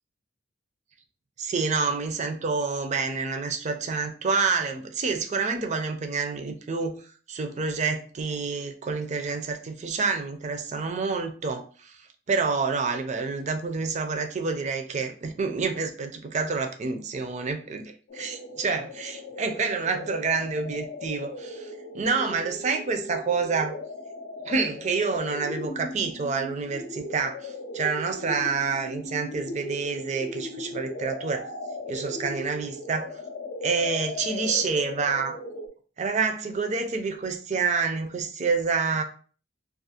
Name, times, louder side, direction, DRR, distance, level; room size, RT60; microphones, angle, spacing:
voice 1, 1.4-7.0 7.3-11.9 12.3-23.7 24.4-31.5 31.9-33.1 33.6-35.4 36.0-39.0, right 4 dB, 40° right, 5 dB, 0.4 m, -28 dB
sound 1, 18.1-35.7, left 2 dB, 60° left, 0.4 m, -37 dB
2.4 x 2.3 x 2.7 m, 0.41 s
head